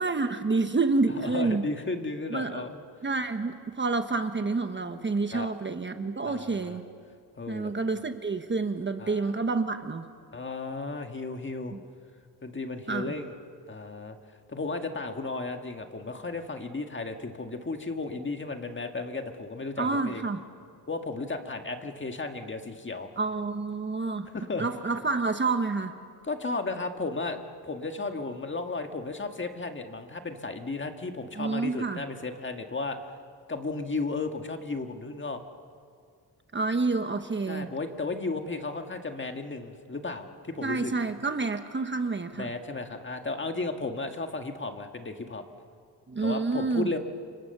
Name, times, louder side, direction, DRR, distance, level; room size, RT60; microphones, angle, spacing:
voice 1, 0.0-1.6 2.3-2.6 3.0-6.8 7.5-10.1 11.7-11.8 12.9-13.1 19.8-20.4 23.2-24.3 24.6-25.9 31.4-32.0 36.5-37.7 40.6-42.5 46.1-46.9, right 3 dB, 30° right, 8 dB, 1.1 m, -28 dB
voice 2, 1.2-2.8 5.3-5.5 6.2-6.8 7.4-7.7 9.0-9.3 10.3-11.7 12.4-13.3 13.7-14.2 14.5-20.3 20.9-23.1 24.3-24.7 26.2-27.4 27.6-33.0 33.5-35.4 37.5-40.9 42.3-45.4 46.2-47.0, left 3 dB, 30° left, 5 dB, 1.8 m, -34 dB
29.0 x 25.0 x 6.8 m, 2.2 s
cardioid pair, 110°, 40 cm